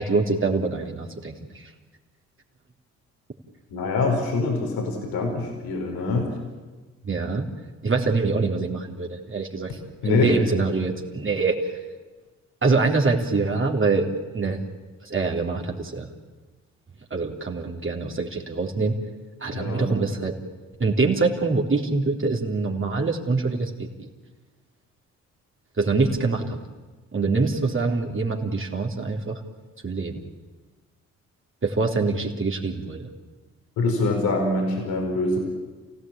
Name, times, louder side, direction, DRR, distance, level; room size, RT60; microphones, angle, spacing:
voice 1, 0.0-1.7 7.0-7.4 7.8-9.7 10.0-11.7 12.6-14.1 14.3-14.6 15.0-16.1 17.1-19.0 19.4-20.3 20.8-23.9 25.8-26.6 27.1-29.4 29.8-30.2 31.6-33.1, right 3 dB, 35° right, 0 dB, 3.5 m, -24 dB
voice 2, 3.7-6.3 10.0-10.4 19.5-19.9 33.8-35.4, left 3 dB, 75° left, 2 dB, 5.0 m, -24 dB
29.0 x 16.5 x 8.8 m, 1.3 s
hypercardioid pair, 45°, 37 cm